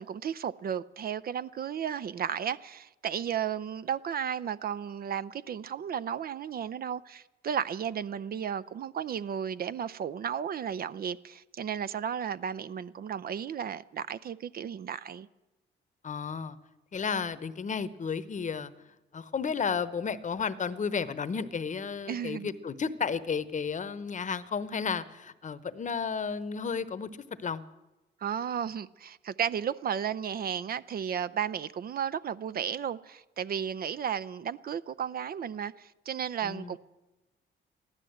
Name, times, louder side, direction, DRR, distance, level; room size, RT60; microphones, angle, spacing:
voice 1, 0.0-15.3 22.1-22.5 28.2-36.8, right 8 dB, 50° right, 0.5 m, -34 dB
voice 2, 16.0-16.6 16.9-18.7 19.1-27.1 27.4-27.6 36.4-36.8, left 6 dB, 40° left, 0.9 m, -33 dB
14.5 x 12.0 x 7.8 m
cardioid pair, 90°, 20 cm